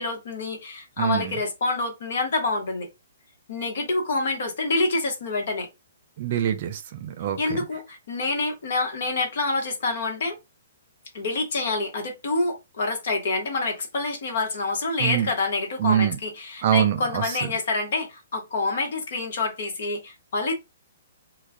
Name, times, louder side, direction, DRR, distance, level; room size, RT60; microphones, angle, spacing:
voice 1, 0.0-2.9 3.5-5.7 7.4-10.4 11.1-20.5, left 3 dB, 60° left, 1.0 m, -27 dB
voice 2, 1.0-1.3 6.2-7.6 15.0-15.3 15.8-16.2 16.6-17.2, right 9 dB, 50° right, 0.5 m, -24 dB
2.3 x 2.2 x 3.4 m
hypercardioid pair, 130°, 0 cm